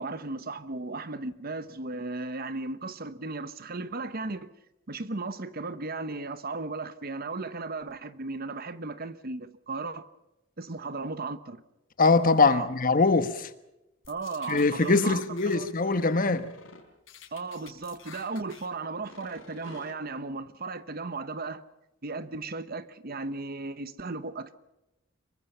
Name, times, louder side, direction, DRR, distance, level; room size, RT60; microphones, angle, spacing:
voice 1, 0.0-4.5 4.9-10.1 10.6-11.6 12.5-12.7 14.1-15.2 15.5-15.7 17.3-21.6 22.0-24.5, right 3 dB, 50° right, 1.1 m, -36 dB
voice 2, 12.0-13.5 14.5-16.5, left 3 dB, 45° left, 1.3 m, -22 dB
sound 1, 14.0-15.6 15.9-16.8 17.1-18.7 19.0-19.9, left 5 dB, 80° left, 4.4 m, -49 dB
25.5 x 23.0 x 5.7 m
head